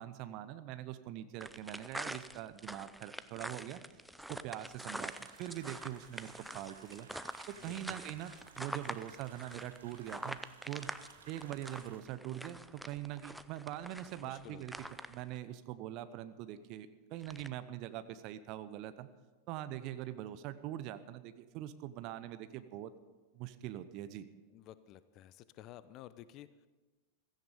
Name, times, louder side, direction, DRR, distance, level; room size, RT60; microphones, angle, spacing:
voice 1, 0.0-3.8 4.3-5.1 5.4-7.1 7.5-10.4 10.7-10.9 11.3-14.7 15.1-19.1 19.5-22.9 23.3-24.3, right 13 dB, 40° right, 12 dB, 0.8 m, -43 dB
sound 1, 1.4-15.4 17.2-17.5, right 1 dB, 5° right, 0.5 m, -45 dB
sound 2, 4.9-12.0, right 5 dB, 70° right, 1.6 m, -58 dB
voice 2, 7.6-8.4 14.2-14.9 24.5-26.7, left 12 dB, 40° left, 16 dB, 0.7 m, -54 dB
16.0 x 14.5 x 5.2 m, 1.2 s
figure-of-eight pair, 90°, 0 cm